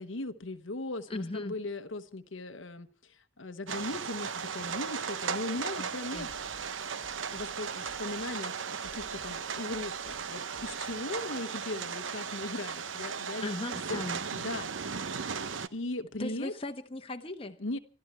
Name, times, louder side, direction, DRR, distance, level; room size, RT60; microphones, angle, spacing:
voice 1, 0.0-6.3 7.3-13.5 13.9-14.0 14.3-15.4 15.7-16.5 17.6-17.8, left 2 dB, 85° left, 1.1 m, -38 dB
voice 2, 1.1-1.5 5.8-6.3 13.4-14.2 16.2-17.6, left 2 dB, 30° left, 1.2 m, -38 dB
sound 1, 3.7-15.7, right 6 dB, 85° right, 0.8 m, -36 dB
sound 2, 6.1-8.5 8.8-11.2, equal, 20° right, 3.3 m, -57 dB
25.5 x 13.0 x 4.4 m
head